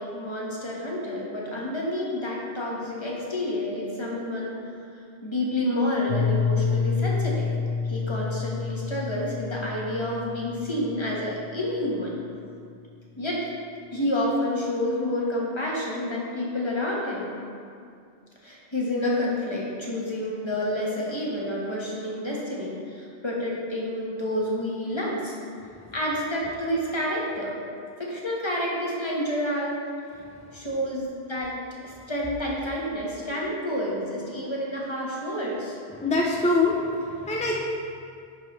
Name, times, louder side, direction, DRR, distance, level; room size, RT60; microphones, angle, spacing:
voice 1, 0.0-4.7 5.2-7.5 7.8-12.1 13.2-13.5 13.9-17.3 18.4-25.3 25.9-27.5 28.0-29.8 30.5-31.6 31.8-35.8 36.7-36.8, left 1 dB, 25° left, -4 dB, 1.3 m, -29 dB
Piano, 6.1-11.7, left 5 dB, 75° left, 0.9 m, -28 dB
voice 2, 36.0-37.6, left 2 dB, 10° left, -3 dB, 0.4 m, -24 dB
10.5 x 4.8 x 3.2 m, 2.3 s
omnidirectional pair, 1.1 m